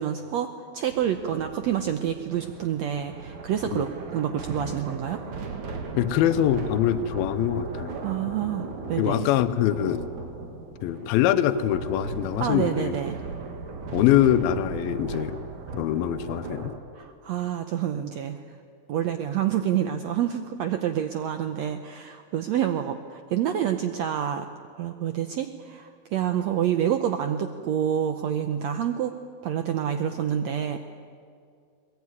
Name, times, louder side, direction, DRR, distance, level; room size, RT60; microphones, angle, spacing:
voice 1, 0.0-5.2 8.0-9.3 12.4-13.2 16.9-18.6 18.9-24.5 24.8-29.1 29.4-30.8, right 10 dB, 85° right, 7 dB, 1.5 m, -28 dB
sound 1, 0.9-16.8, right 4 dB, 55° right, 3.2 m, -37 dB
voice 2, 6.0-7.9 9.0-10.0 10.8-13.0 13.9-15.4 15.7-16.7, left 12 dB, 85° left, 11 dB, 2.6 m, -23 dB
22.0 x 21.0 x 9.6 m, 2.3 s
omnidirectional pair, 4.2 m